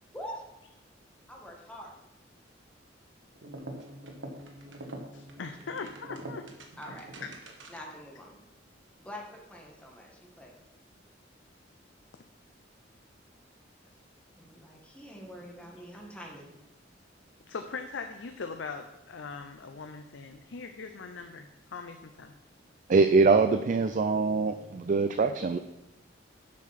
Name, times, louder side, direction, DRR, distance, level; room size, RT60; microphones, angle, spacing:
voice 1, 1.3-2.0 5.4-5.8 6.8-7.0 7.7-8.4 9.0-10.5 14.3-16.5, equal, 5° left, -1 dB, 1.6 m, -45 dB
sound 1, 3.4-8.0, right 1 dB, 90° right, 1.2 m, -44 dB
voice 2, 5.1-6.4 6.9-7.1 17.5-22.4, left 4 dB, 90° left, 6 dB, 0.6 m, -41 dB
voice 3, 22.9-25.6, right 4 dB, 45° right, 9 dB, 0.4 m, -23 dB
7.4 x 5.9 x 5.7 m, 0.97 s
head